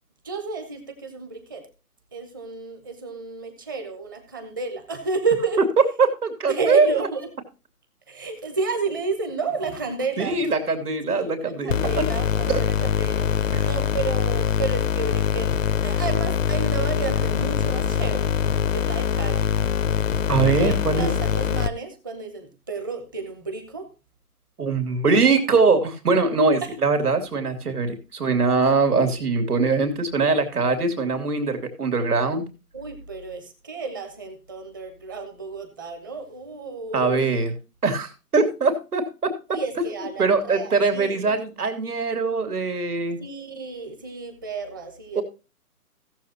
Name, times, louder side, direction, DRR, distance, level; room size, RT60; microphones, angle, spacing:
voice 1, 0.2-1.7 2.1-5.6 6.5-7.3 8.1-10.5 11.0-15.5 15.8-18.3 18.7-19.5 20.6-23.9 26.6-26.7 29.1-29.3 32.7-37.3 39.5-41.3 43.2-45.2, right 4 dB, 15° right, 6 dB, 0.9 m, -31 dB
voice 2, 6.0-7.1 10.2-11.9 12.5-12.6 13.5-13.7 20.3-21.1 24.6-32.4 36.9-37.5 37.8-39.3 40.2-43.2 45.1-45.2, right 4 dB, 75° right, 7 dB, 2.8 m, -22 dB
sound 1, 11.7-21.7, left 8 dB, 55° left, 0.6 m, -23 dB
17.0 x 7.2 x 2.8 m, 0.29 s
hypercardioid pair, 160°, 46 cm